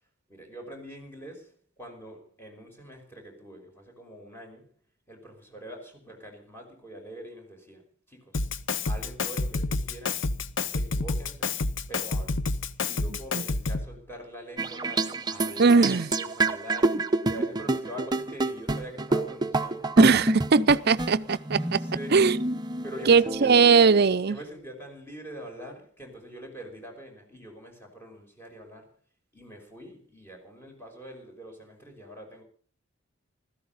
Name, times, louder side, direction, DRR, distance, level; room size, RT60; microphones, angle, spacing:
voice 1, 0.3-4.7 5.1-8.4 8.9-10.3 10.7-11.6 11.9-20.0 20.9-21.0 21.6-22.4 22.8-23.6 24.3-29.0 29.3-32.4, equal, 10° left, 5.5 m, -44 dB
Drum kit, 8.3-14.0, left 3 dB, 70° left, 0.8 m, -29 dB
sound 1, 14.6-24.0, right 2 dB, 20° right, 0.8 m, -28 dB
voice 2, 15.6-16.1 20.0-21.8 22.1-22.3 23.1-24.4, right 5 dB, 55° right, 0.6 m, -19 dB
16.0 x 14.0 x 5.5 m
head